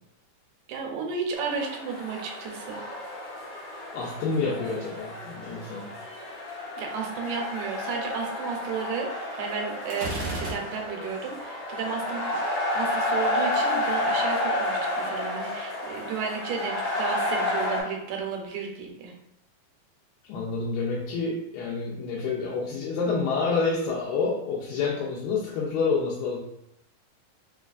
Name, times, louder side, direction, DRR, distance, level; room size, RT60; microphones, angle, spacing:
voice 1, 0.7-2.8 6.8-12.3 12.7-19.1, right 5 dB, 90° right, 1 dB, 2.4 m, -33 dB
sound 1, 1.3-17.8, left 1 dB, 55° left, 1.4 m, -31 dB
voice 2, 3.9-5.9 20.3-26.5, left 4 dB, 90° left, -4 dB, 2.3 m, -28 dB
Gunshot gunfire, 9.9-11.1, right 2 dB, 65° right, 1.1 m, -34 dB
5.3 x 2.3 x 2.4 m, 0.80 s
omnidirectional pair, 3.9 m